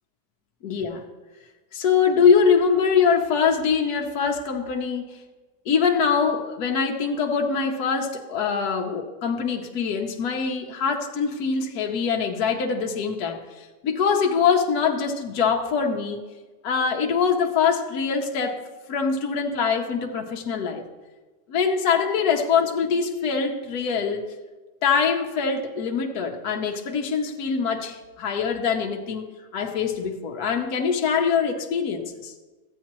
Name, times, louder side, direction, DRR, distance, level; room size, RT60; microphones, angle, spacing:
voice 1, 0.6-1.1 1.7-5.0 5.7-16.2 16.6-18.6 18.9-20.8 21.5-24.3 24.8-32.3, left 6 dB, 65° left, 2 dB, 1.3 m, -23 dB
14.5 x 8.4 x 3.0 m, 1.2 s
omnidirectional pair, 1.9 m